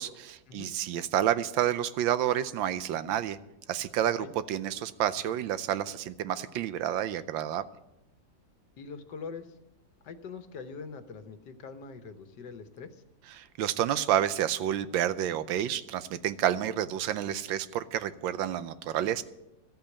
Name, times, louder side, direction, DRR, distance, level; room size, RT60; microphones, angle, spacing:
voice 1, 0.0-3.4 3.7-7.6 13.4-19.2, right 11 dB, 80° right, 14 dB, 1.4 m, -29 dB
voice 2, 8.8-9.5 10.0-13.0, left 5 dB, 65° left, 10 dB, 1.5 m, -43 dB
13.5 x 8.1 x 8.5 m, 0.91 s
omnidirectional pair, 2.1 m